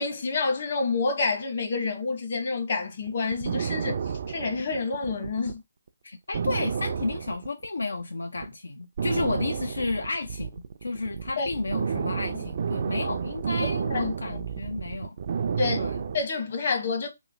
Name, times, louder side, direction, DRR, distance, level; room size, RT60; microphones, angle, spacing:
voice 1, 0.0-4.0 4.3-5.6 11.4-11.5 13.9-14.1 15.6-17.1, left 4 dB, 50° left, 1.0 m, -28 dB
sound 1, 3.1-5.6 5.9-6.0 6.3-8.0 8.4-8.5 9.0-16.2, right 6 dB, 50° right, 0.4 m, -31 dB
voice 2, 6.0-15.2 15.8-16.0, left 3 dB, 85° left, 0.4 m, -32 dB
3.0 x 3.0 x 2.6 m
hypercardioid pair, 155°, 0 cm